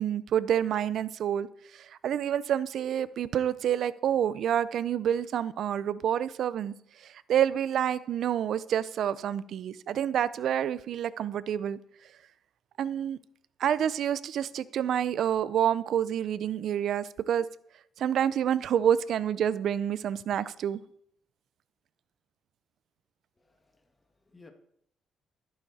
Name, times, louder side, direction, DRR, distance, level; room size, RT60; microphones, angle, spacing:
voice 1, 0.0-1.5 1.7-6.7 7.0-11.8 12.8-13.2 13.6-17.5 18.0-20.8, right 9 dB, 70° right, 0.6 m, -28 dB
voice 2, 23.4-24.5, left 3 dB, 20° left, 1.8 m, -58 dB
12.5 x 11.5 x 4.2 m
cardioid pair, 90°, 0 cm